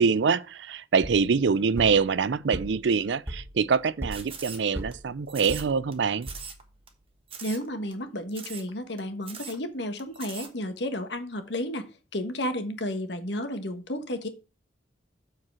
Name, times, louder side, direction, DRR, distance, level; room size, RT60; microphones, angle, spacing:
voice 1, 0.0-6.3, right 5 dB, 70° right, 0.5 m, -24 dB
sound 1, 2.4-6.8, equal, 10° right, 0.8 m, -40 dB
sound 2, 4.1-4.9 5.3-5.9 6.2-6.6 6.9-7.0 7.3-7.7 7.9-8.0 8.3-8.7 9.0-9.1 9.2-9.6 10.0-10.5, right 6 dB, 30° right, 1.3 m, -41 dB
voice 2, 7.4-14.3, left 1 dB, 65° left, 1.4 m, -32 dB
7.3 x 4.7 x 6.1 m
head